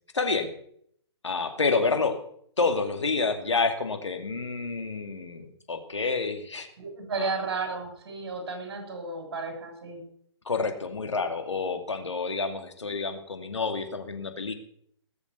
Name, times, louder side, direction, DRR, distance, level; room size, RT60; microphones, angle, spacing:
voice 1, 0.1-0.5 1.2-2.2 2.6-6.7 7.2-7.3 10.5-14.5, left 4 dB, 90° left, 6 dB, 2.5 m, -28 dB
voice 2, 6.8-10.0, right 3 dB, 55° right, 2 dB, 7.5 m, -33 dB
19.5 x 7.3 x 6.8 m, 0.67 s
hypercardioid pair, 145°, 15 cm